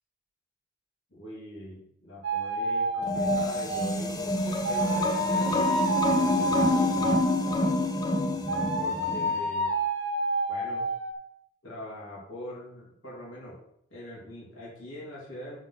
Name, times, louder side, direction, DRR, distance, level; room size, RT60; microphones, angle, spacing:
voice 1, 1.1-7.1 8.7-9.7 10.5-10.8 11.6-13.6 13.9-15.6, equal, 65° left, -6 dB, 3.3 m, -42 dB
sound 1, 2.2-4.0 4.6-7.5 8.5-11.1, right 1 dB, 60° right, 1.0 m, -29 dB
sound 2, 3.0-9.3, left 2 dB, 20° left, 0.7 m, -27 dB
6.0 x 5.7 x 6.3 m, 0.72 s
head